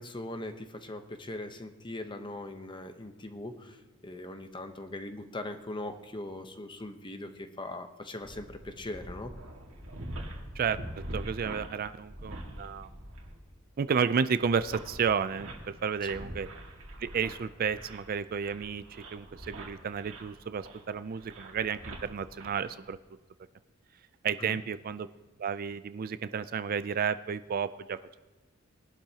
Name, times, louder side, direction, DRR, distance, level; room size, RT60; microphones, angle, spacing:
voice 1, 0.0-3.8 4.0-9.3 24.4-24.6, left 1 dB, 25° left, 7 dB, 0.9 m, -40 dB
sound 1, 8.2-22.9, right 1 dB, 70° right, 2.0 m, -44 dB
voice 2, 11.1-12.9 13.8-16.5 17.0-18.8 19.1-23.0 24.2-25.1 25.4-28.2, right 6 dB, 45° right, 13 dB, 0.4 m, -32 dB
21.5 x 11.5 x 2.9 m, 1.2 s
head